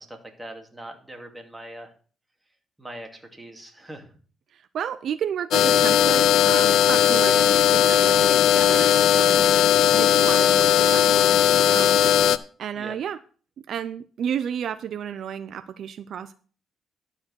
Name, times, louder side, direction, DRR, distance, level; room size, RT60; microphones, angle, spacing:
voice 1, 0.0-1.9 2.8-4.1 12.7-13.0, right 1 dB, 10° right, 2.3 m, -41 dB
voice 2, 4.5-9.5 9.9-11.4 11.7-12.0 12.6-13.2 13.7-16.3, right 8 dB, 65° right, 0.5 m, -32 dB
sound 1, 5.5-12.4, left 10 dB, 75° left, 0.5 m, -18 dB
11.5 x 4.9 x 6.2 m
cardioid pair, 90°, 0 cm